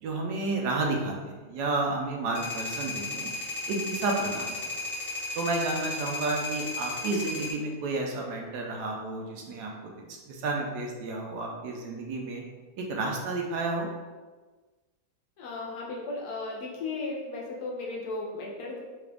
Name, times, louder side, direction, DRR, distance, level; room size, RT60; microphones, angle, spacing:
voice 1, 0.0-3.3 3.7-4.6 5.4-12.4 12.8-13.9, right 2 dB, 75° right, 0 dB, 1.1 m, -31 dB
sound 1, 2.4-7.5, left 3 dB, 45° left, 1.1 m, -34 dB
voice 2, 15.4-18.8, left 3 dB, 70° left, -2 dB, 1.1 m, -35 dB
3.8 x 2.4 x 3.3 m, 1.3 s
omnidirectional pair, 1.9 m